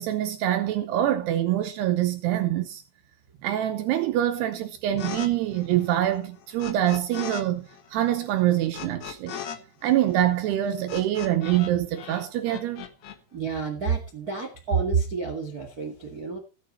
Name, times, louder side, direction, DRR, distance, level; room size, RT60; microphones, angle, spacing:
voice 1, 0.0-2.8 3.4-9.4 9.8-12.9, right 12 dB, 80° right, 2.9 m, -25 dB
sound 1, 5.0-5.3 5.5-7.4 7.7-11.7 12.0-13.2, left 8 dB, 60° left, 2.0 m, -38 dB
voice 2, 13.3-16.4, right 5 dB, 35° right, 1.5 m, -28 dB
16.5 x 8.4 x 4.3 m
omnidirectional pair, 4.9 m